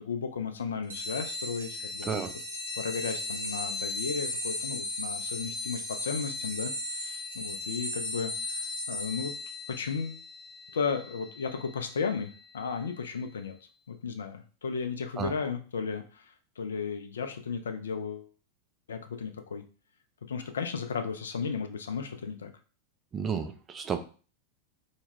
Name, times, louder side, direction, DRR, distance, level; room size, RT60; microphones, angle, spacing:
voice 1, 0.0-2.2 2.8-9.3 9.7-10.2 10.7-13.6 13.9-18.3 18.9-19.6 20.3-22.5, left 5 dB, 65° left, 7 dB, 0.3 m, -34 dB
sound 1, 0.9-13.0, left 2 dB, 70° right, 0.8 m, -37 dB
voice 2, 23.1-24.0, right 6 dB, 20° right, 7 dB, 0.3 m, -32 dB
2.2 x 2.1 x 3.3 m, 0.38 s
figure-of-eight pair, 90°, 0 cm